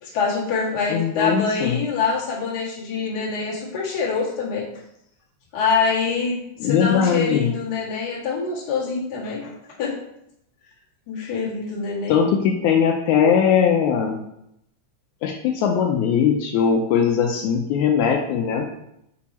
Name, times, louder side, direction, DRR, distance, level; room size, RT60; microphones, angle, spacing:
voice 1, 0.0-4.7 5.5-9.5 9.8-9.9 11.1-12.2, left 5 dB, 40° left, -5 dB, 1.7 m, -25 dB
voice 2, 0.9-1.8 6.6-7.5 12.1-14.2 15.2-18.7, left 7 dB, 80° left, 3 dB, 1.9 m, -20 dB
6.2 x 4.4 x 4.1 m, 0.79 s
omnidirectional pair, 3.5 m